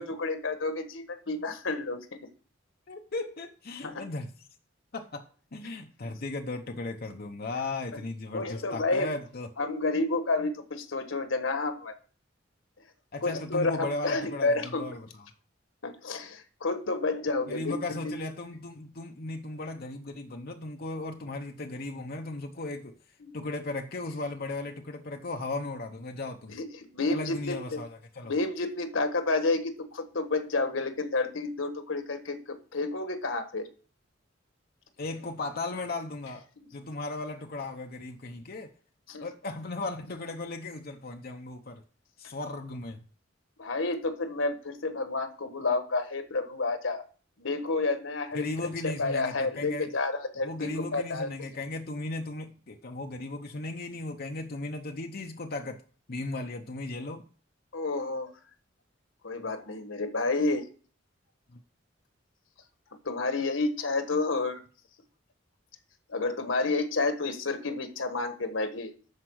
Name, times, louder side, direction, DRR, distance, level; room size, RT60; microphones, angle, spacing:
voice 1, 0.0-2.2 3.8-4.0 8.3-9.1 9.6-11.9 13.2-14.9 15.8-17.7 18.0-18.2 23.2-23.5 26.5-26.7 26.9-27.8 28.2-33.7 39.1-39.3 43.6-47.0 47.4-48.5 48.8-51.3 57.7-58.3 59.2-60.6 63.0-64.6 66.1-68.9, left 3 dB, 85° left, 1.5 m, -30 dB
voice 2, 2.9-4.3 4.9-9.5 13.1-15.3 17.5-23.0 23.3-26.6 27.1-28.3 35.0-36.4 36.7-38.7 39.2-41.8 42.2-43.0 48.3-49.9 50.4-55.8 56.1-57.2 61.5-61.6, left 2 dB, 50° left, 0.8 m, -36 dB
12.0 x 4.7 x 6.3 m
head